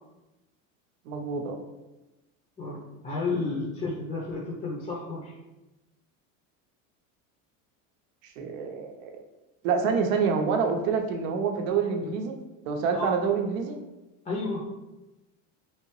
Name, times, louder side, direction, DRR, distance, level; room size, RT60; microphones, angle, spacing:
voice 1, 1.1-1.6 8.4-9.1 9.6-12.4 12.7-13.8, right 5 dB, 85° right, 4 dB, 0.7 m, -27 dB
voice 2, 2.6-5.3 12.9-13.2 14.2-14.6, left 3 dB, 20° left, -3 dB, 0.5 m, -32 dB
3.3 x 2.7 x 3.0 m, 1.0 s
supercardioid pair, 120°, 40 cm